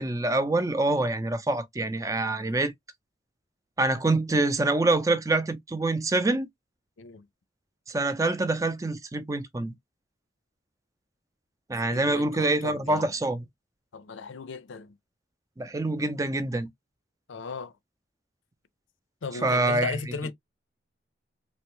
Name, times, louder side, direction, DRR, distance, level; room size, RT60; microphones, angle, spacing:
voice 1, 0.0-2.7 3.8-6.5 7.9-9.7 11.7-13.5 15.6-16.7 19.4-20.0, right 2 dB, 15° right, 0.5 m, -26 dB
voice 2, 11.9-13.1 13.9-14.9 17.3-17.7 19.2-20.3, left 4 dB, 80° left, 0.5 m, -36 dB
3.5 x 2.1 x 3.0 m
head